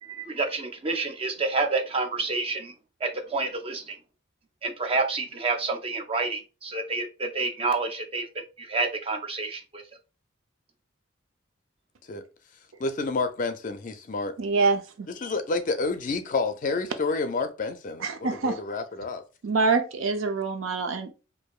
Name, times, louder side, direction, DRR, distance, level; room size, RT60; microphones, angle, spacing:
voice 1, 0.0-2.7 3.0-4.0 4.6-9.8, right 3 dB, 30° right, 0.5 m, -29 dB
voice 2, 12.8-14.3 15.2-19.2, left 3 dB, 40° left, 0.4 m, -29 dB
voice 3, 14.4-15.1 18.0-18.6 19.4-21.1, right 4 dB, 80° right, 0.6 m, -25 dB
4.7 x 2.6 x 2.3 m
head